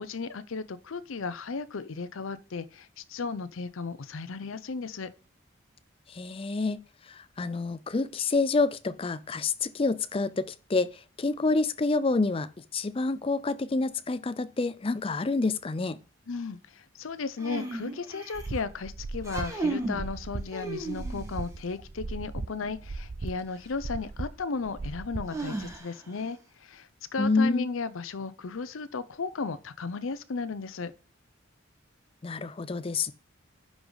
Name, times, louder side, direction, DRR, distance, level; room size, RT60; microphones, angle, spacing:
voice 1, 0.0-5.1 16.3-30.9, left 4 dB, 80° left, 0.6 m, -35 dB
voice 2, 6.1-6.8 7.1-12.5 12.7-16.0 27.2-27.7 32.2-33.1, left 3 dB, 25° left, 0.4 m, -28 dB
sound 1, 17.4-18.6 19.2-20.1 20.5-21.4 23.4-23.5 25.3-26.2, right 2 dB, 15° right, 1.5 m, -34 dB
sound 2, 18.3-25.8, right 3 dB, 45° right, 0.5 m, -38 dB
10.0 x 4.8 x 3.9 m
head